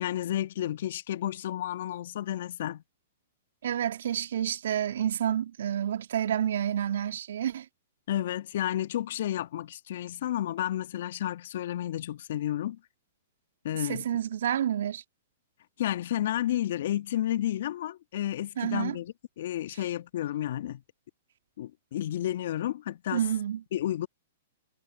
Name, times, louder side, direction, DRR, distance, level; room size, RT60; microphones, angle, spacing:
voice 1, 0.0-2.8 8.1-12.8 13.6-14.0 15.8-20.8 21.6-23.2 23.7-24.1, left 12 dB, 60° left, 1.4 m, -31 dB
voice 2, 3.6-7.7 13.8-15.0 18.6-19.0 23.1-23.6, right 10 dB, 65° right, 2.2 m, -29 dB
hypercardioid pair, 110°, 0 cm